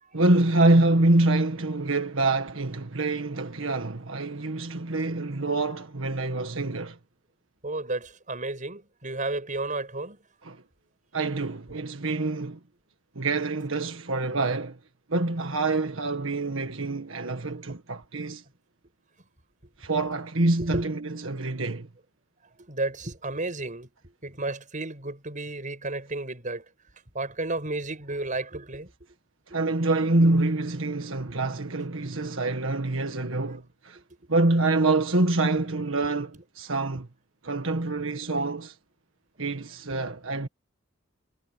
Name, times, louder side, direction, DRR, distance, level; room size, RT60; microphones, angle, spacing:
voice 1, 0.1-7.0 10.4-10.6 11.1-12.6 13.1-14.8 15.1-18.4 19.8-21.9 29.5-34.0 34.3-37.1 37.4-38.8 39.4-40.5, right 2 dB, 85° right, 1.7 m, -26 dB
voice 2, 7.6-10.2 17.7-17.8 20.6-20.9 22.6-26.6 27.1-28.9 34.0-34.1, right 2 dB, 40° right, 7.3 m, -32 dB
head